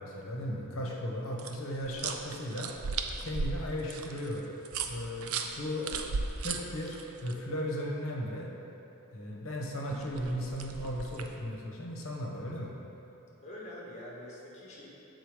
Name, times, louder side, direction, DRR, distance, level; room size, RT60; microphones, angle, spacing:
voice 1, 0.0-2.7 3.2-4.5 4.9-5.8 6.4-8.5 9.1-12.7, equal, 65° left, -1 dB, 0.9 m, -36 dB
sound 1, 1.4-7.3 9.9-11.4, right 4 dB, 70° right, 0.4 m, -37 dB
voice 2, 13.4-14.9, left 1 dB, 30° left, -4 dB, 1.1 m, -45 dB
6.8 x 3.9 x 4.8 m, 2.9 s
head